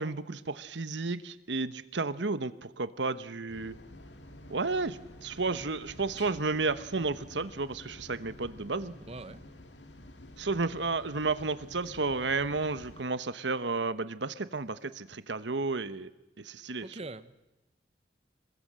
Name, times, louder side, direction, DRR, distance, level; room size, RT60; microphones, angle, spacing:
voice 1, 0.0-3.8 4.5-8.9 10.4-16.1 16.4-17.0, right 3 dB, 80° right, 13 dB, 1.2 m, -32 dB
sound 1, 3.5-13.0, left 1 dB, 85° left, 2.1 m, -50 dB
voice 2, 9.1-9.4 16.8-17.4, right 2 dB, 35° right, 12 dB, 1.1 m, -43 dB
27.5 x 21.5 x 7.6 m, 1.0 s
head